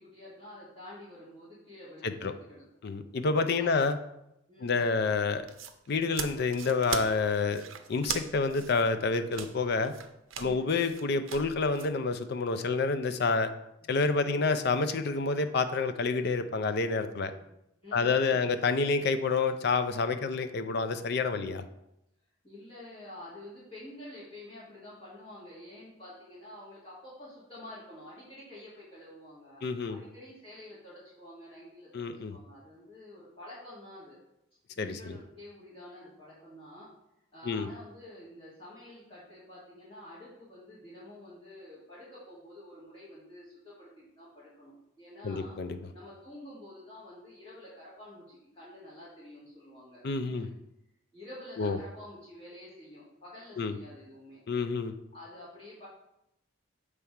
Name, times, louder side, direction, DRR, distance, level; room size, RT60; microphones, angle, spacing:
voice 1, 0.0-2.6 3.6-3.9 4.5-4.8 10.3-10.7 13.8-13.9 17.2-17.4 17.8-18.5 21.3-21.5 22.4-29.6 29.9-34.2 34.8-36.9 37.3-45.6 45.9-50.6 51.1-54.4 55.1-55.9, left 1 dB, 30° left, -9 dB, 2.4 m, -49 dB
voice 2, 2.8-4.0 4.6-5.5 5.9-7.6 7.9-9.9 10.4-13.5 13.9-17.3 17.9-21.6 29.6-30.0 31.9-32.4 34.8-35.2 37.4-37.7 45.2-45.8 50.0-50.5 51.6-51.8 53.6-53.8 54.5-54.9, left 4 dB, 55° left, 9 dB, 0.5 m, -28 dB
sound 1, 5.4-11.9, right 8 dB, 75° right, 0.5 m, -40 dB
7.0 x 3.4 x 4.7 m, 0.84 s
head